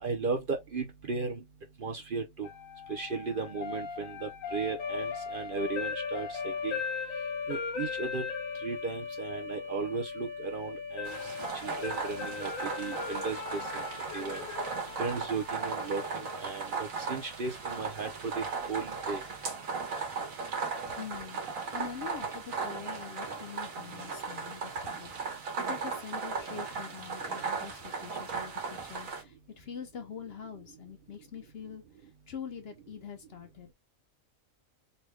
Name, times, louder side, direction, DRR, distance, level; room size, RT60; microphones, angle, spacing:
voice 1, 0.0-1.4 1.8-2.5 2.9-6.8 7.5-8.2 8.6-11.1 11.6-12.5 12.8-13.8 14.1-14.4 15.0-18.1 18.4-19.2, right 4 dB, 50° right, 0.7 m, -35 dB
sound 1, 2.4-16.5, left 6 dB, 80° left, 1.5 m, -38 dB
sound 2, 11.0-29.2, right 4 dB, 85° right, 1.6 m, -37 dB
voice 2, 21.0-33.7, left 7 dB, 55° left, 0.9 m, -44 dB
4.1 x 2.2 x 3.1 m
omnidirectional pair, 1.4 m